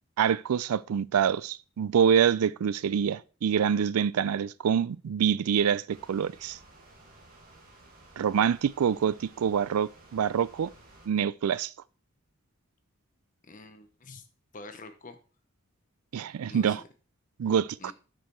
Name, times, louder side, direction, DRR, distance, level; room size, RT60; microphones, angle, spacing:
voice 1, 0.2-6.6 8.2-10.7 11.1-11.7 16.1-16.8 17.4-17.9, right 8 dB, 90° right, 0.4 m, -26 dB
sound 1, 5.9-11.1, right 2 dB, 40° right, 2.0 m, -55 dB
voice 2, 13.5-14.2 14.5-15.2 16.5-16.9 17.8-17.9, left 3 dB, 35° left, 0.8 m, -46 dB
6.5 x 6.5 x 4.5 m
head